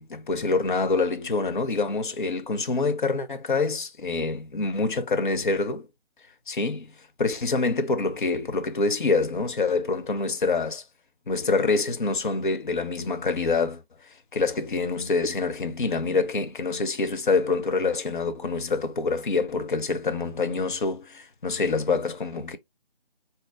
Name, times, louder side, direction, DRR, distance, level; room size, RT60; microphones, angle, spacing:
voice 1, 0.0-5.9 6.5-6.9 7.2-10.8 11.3-13.8 14.3-22.6, left 3 dB, 55° left, 0.8 m, -26 dB
4.1 x 3.9 x 2.3 m
figure-of-eight pair, 160°, 30 cm